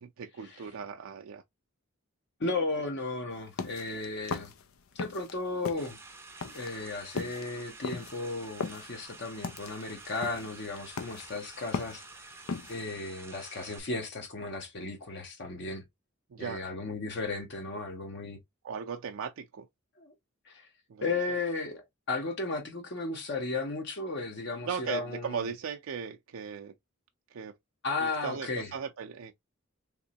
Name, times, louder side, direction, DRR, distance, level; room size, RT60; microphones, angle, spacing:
voice 1, 0.0-1.4 16.3-16.6 18.6-19.7 20.9-21.2 24.6-26.7 27.3-27.5 28.0-29.3, right 6 dB, 75° right, 0.4 m, -37 dB
voice 2, 2.4-4.5 4.9-6.0 6.5-12.0 12.7-15.8 16.4-18.4 20.0-20.1 20.4-20.7 21.0-25.5 27.8-28.7, left 3 dB, 55° left, 0.8 m, -35 dB
sound 1, 3.3-5.3 5.6-12.8, left 4 dB, 85° left, 0.5 m, -38 dB
sound 2, 5.8-13.8, right 3 dB, 10° right, 0.5 m, -50 dB
3.5 x 3.0 x 2.7 m
head